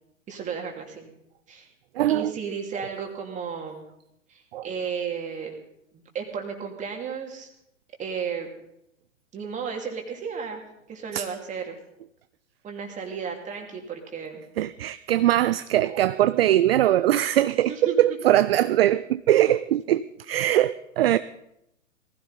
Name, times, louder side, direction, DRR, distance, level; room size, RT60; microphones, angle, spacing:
voice 1, 0.3-1.1 1.5-1.7 2.1-3.8 4.3-5.5 5.9-7.5 8.0-8.5 9.3-10.6 10.9-11.8 12.6-14.4 17.7-18.0, right 6 dB, 20° right, 2 dB, 2.8 m, -33 dB
voice 2, 1.9-2.3 4.5-4.7 11.1-11.3 14.6-21.2, right 13 dB, 50° right, 14 dB, 0.5 m, -21 dB
19.0 x 15.5 x 4.2 m, 0.81 s
figure-of-eight pair, 110°, 40 cm